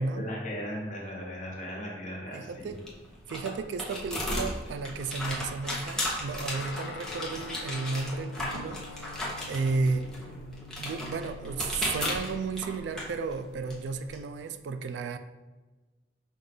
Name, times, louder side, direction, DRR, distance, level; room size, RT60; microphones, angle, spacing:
voice 1, 0.2-2.7, equal, 45° left, -3 dB, 1.2 m, -37 dB
voice 2, 2.3-2.8 3.3-9.2 9.5-10.1 10.8-15.2, right 4 dB, 75° right, 10 dB, 0.3 m, -33 dB
sound 1, 2.4-14.2, left 1 dB, 5° left, 0.7 m, -36 dB
Guitar, 6.5-14.2, left 4 dB, 65° left, 0.3 m, -47 dB
5.3 x 2.4 x 3.8 m, 1.2 s
head